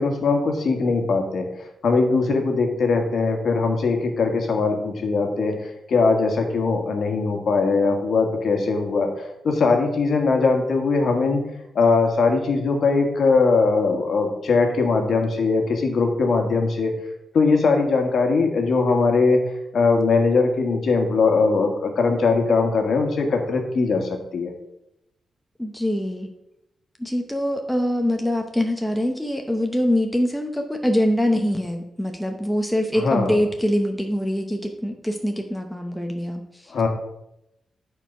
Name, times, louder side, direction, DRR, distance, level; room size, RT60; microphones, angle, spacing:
voice 1, 0.0-11.4 11.7-16.9 17.3-19.4 19.7-24.5 33.0-33.4 36.7-36.9, left 4 dB, 55° left, 3 dB, 1.5 m, -21 dB
voice 2, 25.6-26.3 27.0-36.7, left 1 dB, ahead, 3 dB, 0.7 m, -24 dB
10.5 x 4.6 x 5.5 m, 0.85 s
wide cardioid pair, 170°, 0 cm